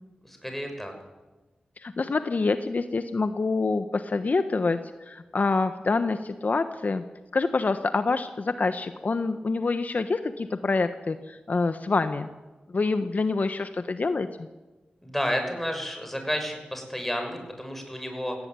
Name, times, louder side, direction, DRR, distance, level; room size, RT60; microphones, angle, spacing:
voice 1, 0.2-0.9 15.0-18.4, equal, 5° left, 4 dB, 6.6 m, -31 dB
voice 2, 1.8-7.0 7.3-12.3 12.7-14.5, left 3 dB, 60° left, 9 dB, 1.1 m, -26 dB
18.0 x 17.0 x 9.8 m, 1.2 s
cardioid pair, 50°, 3 cm